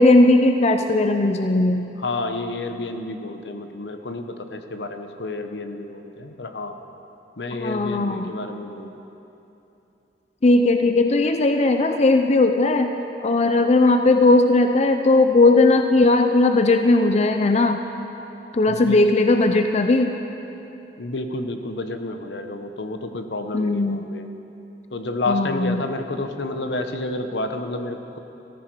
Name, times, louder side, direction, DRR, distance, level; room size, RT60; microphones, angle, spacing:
voice 1, 0.0-1.9 7.5-8.3 10.4-12.9 13.2-17.8 18.5-20.1 23.5-24.0 25.3-25.8, left 2 dB, 40° left, 6 dB, 0.5 m, -17 dB
voice 2, 2.0-6.8 7.4-9.0 18.7-19.0 21.0-24.3 24.9-28.2, left 2 dB, 75° left, 7 dB, 0.9 m, -30 dB
14.5 x 14.0 x 4.7 m, 2.9 s
head